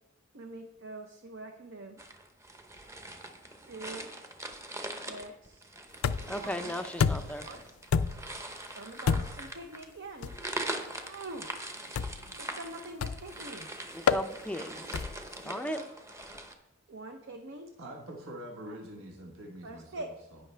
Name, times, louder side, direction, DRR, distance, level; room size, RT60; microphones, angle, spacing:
voice 1, 0.3-2.0 3.6-4.1 4.9-5.7 6.3-6.8 7.4-7.8 8.7-13.7 15.4-15.9 16.9-17.7 18.7-18.8 19.6-20.1, right 2 dB, 60° right, 5 dB, 0.7 m, -45 dB
sound 1, 2.0-16.5, right 1 dB, 15° right, 0.8 m, -42 dB
sound 2, 6.0-6.5 7.0-7.4 7.9-8.4 9.1-9.5 10.2-10.4 11.9-12.3 13.0-13.4 14.1-14.3 14.9-15.3, left 6 dB, 80° left, 0.4 m, -29 dB
voice 2, 6.3-7.5 14.1-14.8 15.4-15.8, left 1 dB, 5° left, 9 dB, 0.4 m, -35 dB
voice 3, 17.8-20.1, right 1 dB, 80° right, 1 dB, 1.4 m, -44 dB
16.5 x 5.7 x 3.3 m, 0.92 s
head